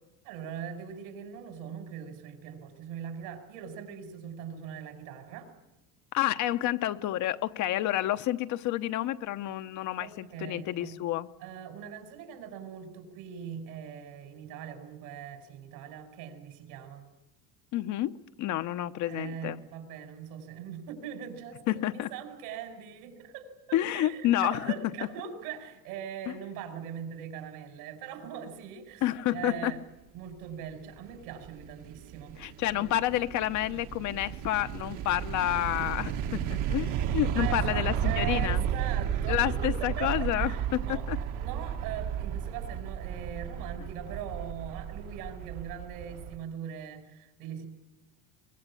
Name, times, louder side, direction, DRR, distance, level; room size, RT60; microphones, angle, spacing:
voice 1, 0.2-5.5 10.0-10.9 11.4-17.1 19.1-29.8 30.1-32.9 37.4-47.7, right 8 dB, 70° right, 7 dB, 5.2 m, -41 dB
voice 2, 6.1-11.3 17.7-18.1 18.4-19.6 21.7-22.1 23.7-24.7 26.3-26.4 29.0-29.7 32.4-38.6 39.3-41.2, left 13 dB, 50° left, 10 dB, 0.9 m, -29 dB
sound 1, 30.9-46.4, right 9 dB, 55° right, 1.6 m, -33 dB
23.5 x 21.5 x 8.5 m, 0.97 s
cardioid pair, 135°, 38 cm